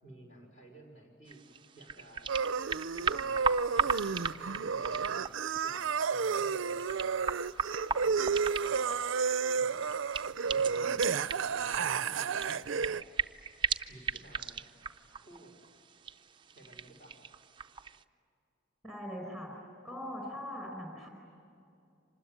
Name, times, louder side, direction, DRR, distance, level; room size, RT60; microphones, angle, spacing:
voice 1, 0.0-1.4 1.7-2.3 3.0-5.3 5.6-7.2 7.8-8.9 9.5-10.0 10.5-13.0 13.9-14.6 15.2-15.6 16.5-17.2, right 1 dB, 35° left, 1 dB, 5.3 m, -54 dB
sound 1, 1.3-18.0, right 6 dB, 25° right, 0.5 m, -38 dB
sound 2, 2.3-13.0, right 5 dB, 70° right, 0.5 m, -31 dB
voice 2, 18.8-19.5 19.8-21.1, left 1 dB, ahead, 1 dB, 4.5 m, -41 dB
26.0 x 20.5 x 9.5 m, 2.5 s
head